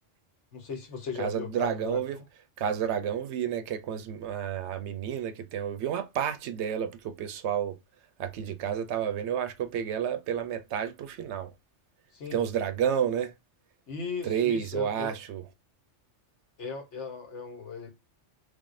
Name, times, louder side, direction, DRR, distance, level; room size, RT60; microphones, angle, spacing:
voice 1, 0.5-2.0 12.1-12.4 13.9-15.1 16.6-17.9, left 5 dB, 70° left, 1.4 m, -37 dB
voice 2, 1.2-2.2 2.6-7.8 8.2-11.5 12.3-13.3 14.2-15.4, right 9 dB, 70° right, 0.8 m, -30 dB
3.5 x 3.3 x 2.5 m
omnidirectional pair, 1.2 m